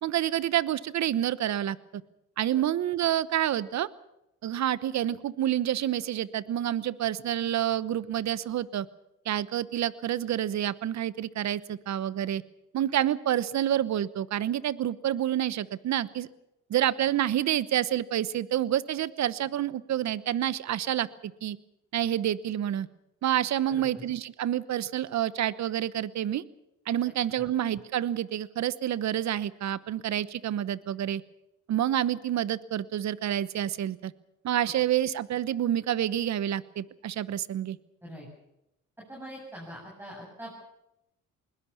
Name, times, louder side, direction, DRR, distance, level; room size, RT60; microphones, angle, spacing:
voice 1, 0.0-2.0 2.4-3.9 4.4-8.9 9.2-12.4 12.7-16.3 16.7-21.6 21.9-22.9 23.2-26.4 26.9-31.2 31.7-34.1 34.4-37.8, right 11 dB, 65° right, 18 dB, 1.1 m, -28 dB
voice 2, 23.7-24.0 27.3-27.5 34.6-34.8 38.0-38.3 39.1-40.5, equal, 5° right, -3 dB, 7.7 m, -43 dB
21.0 x 19.5 x 7.1 m, 0.86 s
cardioid pair, 90°, 30 cm